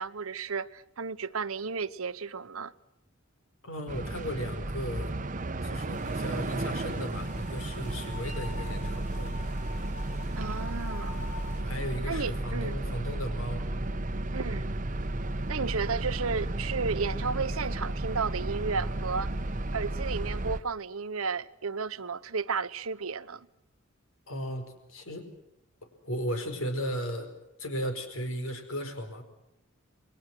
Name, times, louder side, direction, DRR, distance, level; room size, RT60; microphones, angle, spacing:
voice 1, 0.0-2.7 10.3-11.4 12.1-12.8 14.3-14.7 15.5-19.3 19.7-23.5, right 5 dB, 85° right, 1.0 m, -33 dB
voice 2, 3.6-5.2 5.6-9.3 11.6-13.6 24.3-25.3 26.0-27.3 27.6-29.2, equal, 75° left, 5.1 m, -35 dB
sound 1, 3.9-20.6, right 1 dB, 40° right, 1.0 m, -33 dB
sound 2, 5.9-11.6, left 3 dB, 35° left, 6.0 m, -46 dB
28.5 x 22.0 x 6.2 m
head